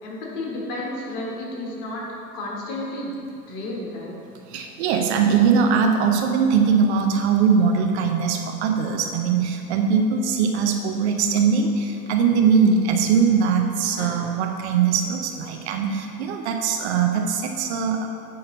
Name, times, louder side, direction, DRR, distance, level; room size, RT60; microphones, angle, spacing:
voice 1, 0.0-2.1 2.3-3.1 3.5-4.1 14.0-14.2, left 2 dB, 45° left, -3 dB, 1.8 m, -32 dB
voice 2, 4.5-18.1, right 6 dB, 45° right, 4 dB, 0.7 m, -21 dB
8.7 x 3.8 x 5.3 m, 2.6 s
figure-of-eight pair, 85°, 46 cm